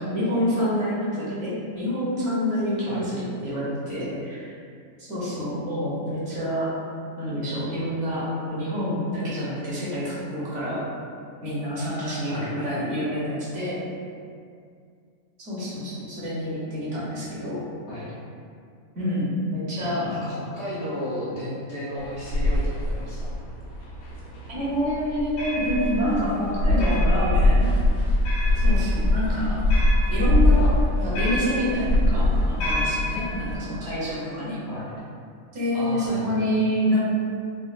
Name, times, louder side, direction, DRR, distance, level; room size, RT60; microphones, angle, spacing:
voice 1, 0.0-4.5 5.0-6.7 7.2-10.8 11.4-13.8 15.4-17.6 19.0-20.1 24.5-27.7 28.5-34.6 35.5-37.0, equal, 55° right, -9 dB, 1.2 m, -27 dB
voice 2, 12.3-12.7 17.9-18.2 19.8-23.3 30.5-30.7 34.7-34.9 35.7-36.3, equal, 60° left, -9 dB, 0.9 m, -34 dB
sound 1, 22.0-33.5, left 1 dB, 90° left, 1.2 m, -22 dB
4.1 x 2.3 x 2.4 m, 2.3 s
omnidirectional pair, 1.5 m